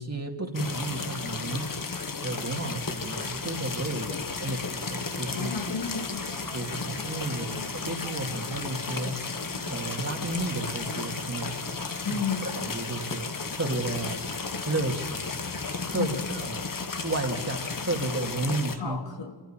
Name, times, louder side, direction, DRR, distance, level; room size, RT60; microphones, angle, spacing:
voice 1, 0.0-1.7 2.2-4.1 4.4-5.5 6.5-7.5 7.8-9.2 9.7-11.5 12.4-14.2 14.7-15.3 15.9-16.1 16.4-16.6 17.0-19.0, right 2 dB, 35° right, 2 dB, 2.5 m, -32 dB
sound 1, 0.5-18.8, left 4 dB, 50° left, 1.5 m, -34 dB
sound 2, 2.6-7.7, right 1 dB, 20° right, 2.2 m, -50 dB
voice 2, 5.3-6.4 7.3-7.7 12.0-12.5 16.0-16.3 18.8-19.3, left 6 dB, 85° left, 2 dB, 3.1 m, -33 dB
sound 3, 5.3-12.6, right 4 dB, 75° right, 4.5 m, -49 dB
27.5 x 15.0 x 9.0 m, 1.4 s
wide cardioid pair, 80°, 43 cm